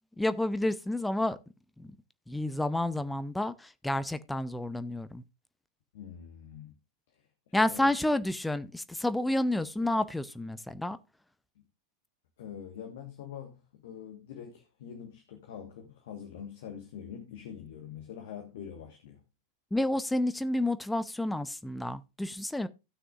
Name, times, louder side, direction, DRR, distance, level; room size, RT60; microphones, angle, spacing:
voice 1, 0.2-1.4 1.8-1.9 2.3-5.2 7.5-11.0 19.7-22.7, left 1 dB, 5° left, 0.6 m, -30 dB
voice 2, 5.9-6.7 7.1-7.9 12.4-19.2, left 8 dB, 55° left, 1.5 m, -45 dB
17.5 x 6.1 x 2.5 m
figure-of-eight pair, 90°, 0 cm